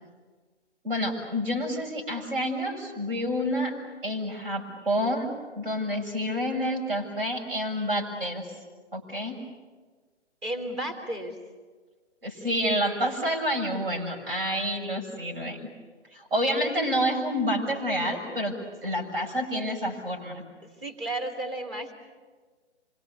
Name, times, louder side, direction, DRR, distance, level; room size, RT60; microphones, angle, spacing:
voice 1, 0.8-3.8 4.0-8.5 8.9-9.4 12.2-15.6 16.1-20.4, equal, 50° right, 1 dB, 7.2 m, -28 dB
voice 2, 10.4-11.4 14.1-14.3 18.8-18.9 20.8-21.9, right 1 dB, 25° right, 6 dB, 3.4 m, -33 dB
27.0 x 24.0 x 8.4 m, 1.4 s
figure-of-eight pair, 140°, 35 cm